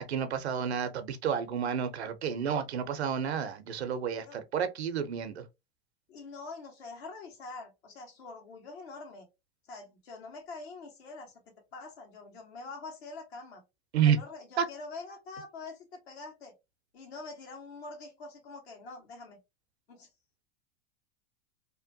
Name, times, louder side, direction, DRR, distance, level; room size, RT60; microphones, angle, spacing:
voice 1, 0.1-5.4 13.9-14.2 14.6-14.7, right 8 dB, 90° right, 0.6 m, -30 dB
voice 2, 6.1-9.3 9.7-11.4 11.7-13.6 14.0-16.5 16.9-19.4 19.9-20.1, left 3 dB, 75° left, 1.4 m, -45 dB
2.9 x 2.2 x 2.6 m
hypercardioid pair, 100°, 32 cm